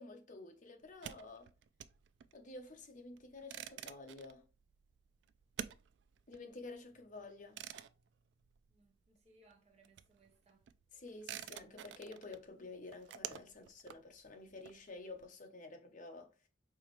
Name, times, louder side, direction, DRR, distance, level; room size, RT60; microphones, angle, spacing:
voice 1, 0.0-1.5 2.3-4.4 6.3-7.6 10.9-16.3, left 3 dB, 45° left, 0.9 m, -51 dB
sound 1, 0.8-9.2 9.5-15.2, right 9 dB, 65° right, 0.3 m, -50 dB
voice 2, 8.7-10.7, right 2 dB, 35° right, 1.0 m, -68 dB
4.7 x 3.0 x 3.1 m
head